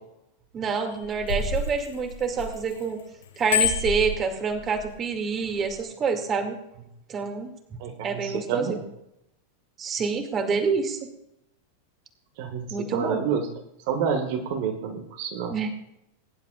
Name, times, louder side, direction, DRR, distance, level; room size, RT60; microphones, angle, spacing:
voice 1, 0.5-3.0 3.4-6.6 7.1-7.5 8.0-8.8 9.8-11.0 12.7-13.2 15.5-15.8, right 5 dB, 25° right, 5 dB, 2.2 m, -27 dB
Bicycle bell, 0.9-2.8 3.2-4.9 5.5-5.7, left 5 dB, 65° left, 1.5 m, -28 dB
voice 2, 7.8-8.8 12.4-13.5 13.9-15.5, right 6 dB, 50° right, 5 dB, 1.7 m, -29 dB
22.0 x 11.0 x 2.4 m, 0.82 s
figure-of-eight pair, 90°, 0 cm